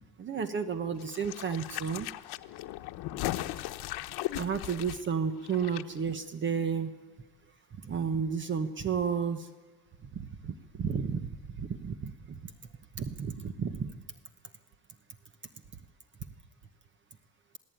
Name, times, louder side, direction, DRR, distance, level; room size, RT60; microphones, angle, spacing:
voice 1, 0.2-2.1 4.3-6.9 7.8-9.5 10.1-12.4 12.9-13.9, right 6 dB, 30° right, 10 dB, 1.1 m, -32 dB
sound 1, 1.0-5.8 6.1-6.2, left 16 dB, 90° left, 1.0 m, -37 dB
27.5 x 17.0 x 9.2 m, 1.3 s
cardioid pair, 170°, 37 cm